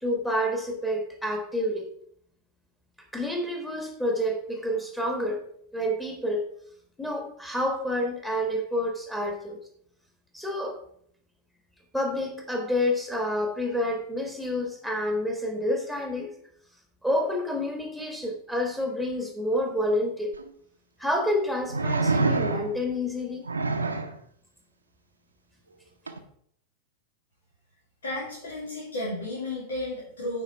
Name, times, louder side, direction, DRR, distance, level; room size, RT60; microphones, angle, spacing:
voice 1, 0.0-1.9 3.1-5.4 5.7-6.5 7.0-9.6 10.3-10.8 11.9-16.3 17.0-20.3 21.0-23.5, left 1 dB, 5° left, 3 dB, 1.6 m, -28 dB
sound 1, 20.3-20.4 21.7-22.9 23.5-24.2 26.1-26.2, right 3 dB, 80° right, 0.7 m, -26 dB
voice 2, 28.0-30.4, left 1 dB, 70° left, -5 dB, 1.9 m, -33 dB
9.0 x 4.5 x 4.2 m, 0.67 s
figure-of-eight pair, 90°, 0 cm